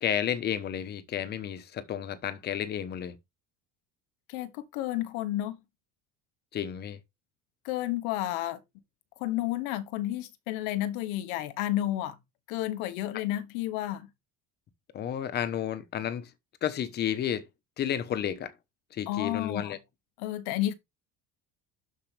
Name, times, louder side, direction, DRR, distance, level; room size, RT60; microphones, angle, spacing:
voice 1, 0.0-3.2 6.5-7.0 14.9-16.3 16.6-17.4 17.8-18.5 18.9-19.8, left 9 dB, 30° left, 1.0 m, -31 dB
voice 2, 4.3-5.6 7.6-8.6 9.2-12.2 12.5-14.1 19.1-19.8 20.2-20.7, left 14 dB, 80° left, 1.2 m, -31 dB
12.0 x 4.9 x 3.4 m
cardioid pair, 180°, 35 cm